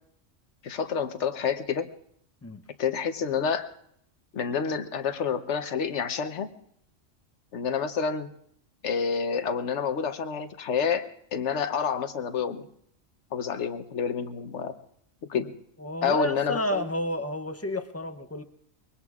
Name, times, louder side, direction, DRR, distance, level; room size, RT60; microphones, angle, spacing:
voice 1, 0.6-1.9 2.8-3.7 4.3-6.5 7.5-8.3 8.8-11.0 11.3-12.7 13.3-14.7 15.3-15.5 16.0-16.9, left 6 dB, 70° left, 10 dB, 1.2 m, -28 dB
voice 2, 15.8-18.4, equal, 20° left, 8 dB, 0.4 m, -31 dB
24.0 x 22.0 x 2.4 m, 0.68 s
omnidirectional pair, 1.3 m